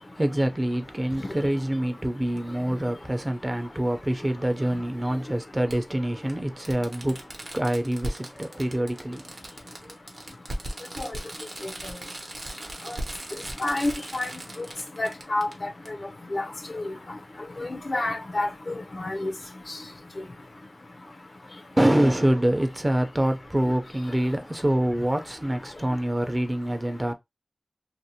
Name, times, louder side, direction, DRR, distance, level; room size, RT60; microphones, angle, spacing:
voice 1, 0.0-9.3 9.8-9.9 21.7-27.1, right 1 dB, 25° right, 0.5 m, -26 dB
Fireworks, 2.4-2.5 4.0-4.1 5.7-5.8 6.3-6.4 6.6-15.5 15.8-15.9, right 1 dB, 65° right, 0.7 m, -37 dB
voice 2, 13.6-14.3 14.6-14.7 15.0-15.7 16.3-16.5 16.7-17.0 17.6-19.3 19.7-19.8 20.2-20.3, left 2 dB, 60° left, 0.4 m, -29 dB
2.5 x 2.0 x 2.8 m
wide cardioid pair, 65°, 0 cm